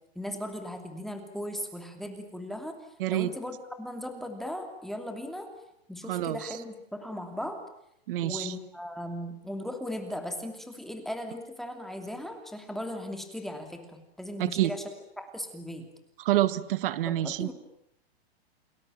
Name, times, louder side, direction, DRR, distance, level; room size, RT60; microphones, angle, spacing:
voice 1, 0.1-2.8 3.1-5.5 5.9-7.6 8.2-14.8 15.2-15.9 17.1-17.5, left 1 dB, ahead, 5 dB, 2.8 m, -37 dB
voice 2, 3.0-3.3 6.1-6.6 8.1-8.5 14.4-14.7 16.2-17.5, right 14 dB, 55° right, 16 dB, 1.7 m, -27 dB
29.5 x 20.5 x 9.1 m, 0.76 s
hypercardioid pair, 150°, 32 cm